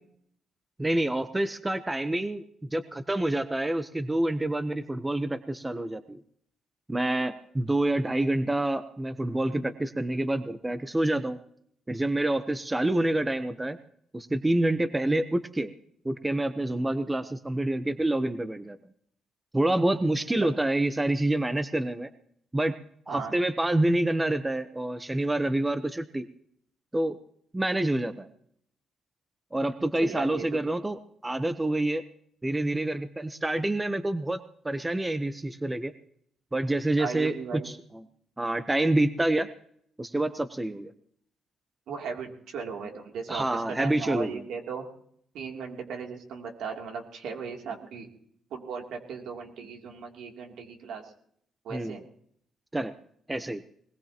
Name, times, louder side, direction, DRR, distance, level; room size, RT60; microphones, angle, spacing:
voice 1, 0.8-6.2 6.9-11.4 11.9-13.8 14.1-15.7 16.0-18.8 19.5-22.1 22.5-22.7 23.1-26.3 26.9-27.2 27.5-28.3 29.5-32.0 32.4-34.4 34.6-35.9 36.5-37.3 37.6-38.0 38.4-39.5 40.0-40.9 43.3-44.4 51.7-52.0 52.7-52.9 53.3-53.6, right 1 dB, 15° right, 10 dB, 0.9 m, -27 dB
voice 2, 30.0-30.6 37.0-37.7 41.9-44.8 45.3-48.1 48.5-51.1 51.6-52.0, right 6 dB, 75° right, 2 dB, 3.0 m, -37 dB
21.0 x 20.0 x 3.0 m, 0.66 s
cardioid pair, 90°, 0 cm